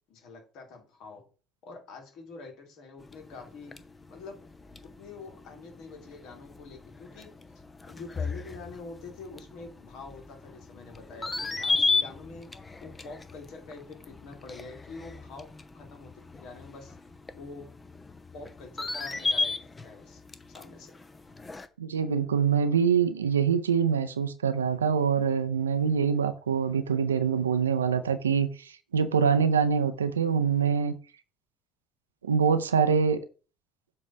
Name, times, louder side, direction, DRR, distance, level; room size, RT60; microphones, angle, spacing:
voice 1, 0.1-1.3 1.6-3.8 4.1-4.4 4.8-7.3 7.9-12.5 12.8-15.5 15.7-17.0 17.3-17.7 18.3-20.2 20.5-20.9, left 3 dB, 60° left, 2.2 m, -45 dB
sound 1, 3.0-21.7, left 4 dB, 25° left, 0.8 m, -36 dB
voice 2, 21.8-30.9 32.2-33.2, right 6 dB, 85° right, 0.5 m, -25 dB
7.6 x 3.2 x 5.5 m
figure-of-eight pair, 55°, 0 cm